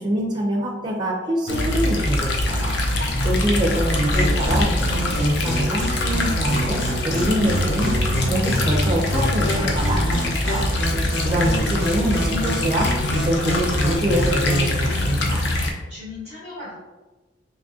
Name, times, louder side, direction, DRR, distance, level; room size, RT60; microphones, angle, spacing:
voice 1, 0.0-10.2 10.5-15.5, equal, 25° right, 0 dB, 0.4 m, -25 dB
sound 1, 1.5-15.7, left 1 dB, 65° left, 0.5 m, -23 dB
voice 2, 3.7-4.1 15.9-16.8, left 2 dB, 30° left, -10 dB, 1.1 m, -38 dB
sound 2, 4.1-14.7, equal, 80° left, 1.1 m, -28 dB
3.5 x 3.0 x 2.6 m, 1.2 s
head